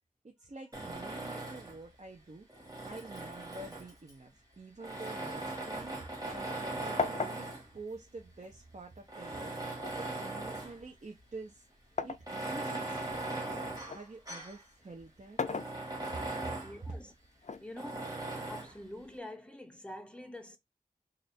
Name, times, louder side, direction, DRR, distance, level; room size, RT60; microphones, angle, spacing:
voice 1, 0.2-2.5 2.8-5.9 6.3-7.5 7.7-9.5 9.9-11.6 12.0-13.5 13.9-15.4 16.1-16.5 16.8-16.9, right 3 dB, 50° right, 0.8 m, -47 dB
Tools, 0.7-1.8 2.5-4.1 4.8-7.7 8.4-8.5 9.1-10.8 11.2-11.3 12.1-14.6 15.0-15.1 15.4-16.8 17.8-18.8, right 2 dB, 25° right, 1.4 m, -39 dB
sound 1, 5.4-6.6 7.0-8.9 9.8-12.3 12.9-14.1 15.1-16.3 17.4-18.5, left 5 dB, 55° left, 0.4 m, -39 dB
voice 2, 16.6-17.1 17.6-18.1 18.5-20.6, left 1 dB, 5° left, 0.9 m, -46 dB
3.3 x 2.6 x 4.2 m
wide cardioid pair, 65°, 14 cm